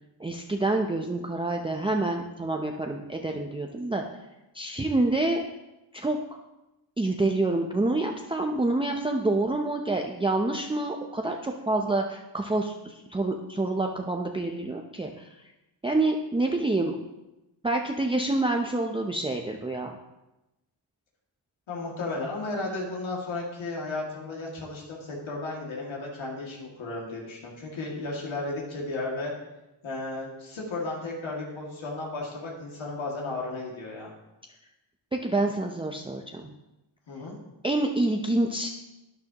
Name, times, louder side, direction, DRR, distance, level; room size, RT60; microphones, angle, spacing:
voice 1, 0.2-4.0 4.5-5.4 5.9-6.2 7.0-15.3 15.8-16.9 17.6-20.0 35.1-36.5 37.6-38.7, right 2 dB, 10° right, 1 dB, 0.6 m, -27 dB
voice 2, 21.7-29.3 29.8-34.1 37.1-37.4, left 2 dB, 75° left, -3 dB, 2.3 m, -34 dB
12.0 x 10.5 x 2.9 m, 0.97 s
wide cardioid pair, 130°, 47 cm